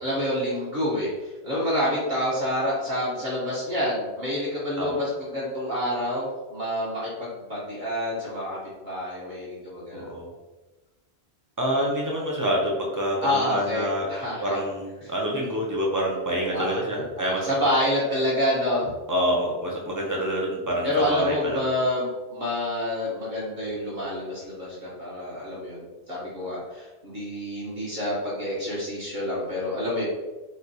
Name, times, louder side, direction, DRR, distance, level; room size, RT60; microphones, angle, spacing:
voice 1, 0.0-10.1 13.2-14.6 15.0-15.1 16.5-16.8 17.2-18.9 20.8-30.1, left 1 dB, 50° right, -7 dB, 1.0 m, -28 dB
voice 2, 9.9-10.3 11.6-14.1 14.4-17.5 19.1-21.6, equal, 25° right, -3 dB, 0.4 m, -27 dB
4.2 x 2.3 x 2.6 m, 1.1 s
omnidirectional pair, 1.1 m